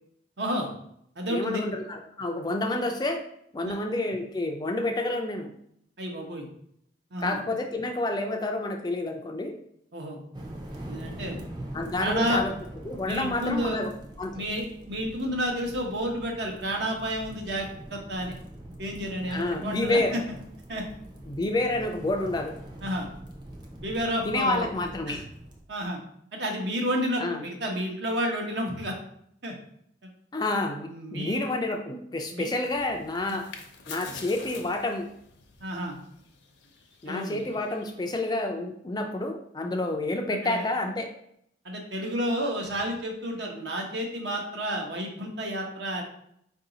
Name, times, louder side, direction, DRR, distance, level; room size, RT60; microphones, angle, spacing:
voice 1, 0.4-0.7 1.2-1.6 3.6-3.8 6.0-6.4 7.1-7.4 9.9-10.2 10.9-11.4 12.0-12.4 13.0-13.8 14.3-18.4 18.8-20.0 20.7-20.8 22.8-23.1 23.8-24.6 25.1-25.2 25.7-26.0 26.3-28.9 29.4-29.5 30.9-31.5 32.3-32.5 33.3-33.4 35.6-35.9 37.1-37.4 40.3-40.7 41.6-46.0, equal, 65° right, 1 dB, 0.9 m, -31 dB
voice 2, 1.3-3.2 3.5-5.5 7.2-9.5 11.7-12.5 12.9-14.4 19.3-20.2 21.3-22.5 24.2-25.2 27.2-27.4 30.3-33.5 33.9-35.1 37.0-41.1, left 2 dB, 20° left, 4 dB, 0.4 m, -29 dB
sound 1, 10.3-25.6, right 1 dB, 25° right, 0.6 m, -43 dB
sound 2, 32.7-38.4, left 5 dB, 70° left, 0.7 m, -47 dB
4.7 x 2.7 x 3.8 m, 0.71 s
head